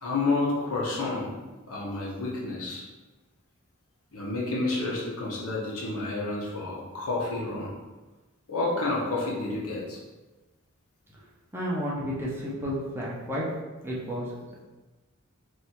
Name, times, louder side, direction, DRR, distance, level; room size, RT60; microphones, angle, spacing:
voice 1, 0.0-1.3 1.7-2.8 4.1-7.7 8.5-10.0, left 2 dB, 85° left, -4 dB, 1.1 m, -30 dB
voice 2, 11.5-13.4 13.8-14.3, equal, 10° right, -6 dB, 0.8 m, -31 dB
3.3 x 2.7 x 4.3 m, 1.2 s
head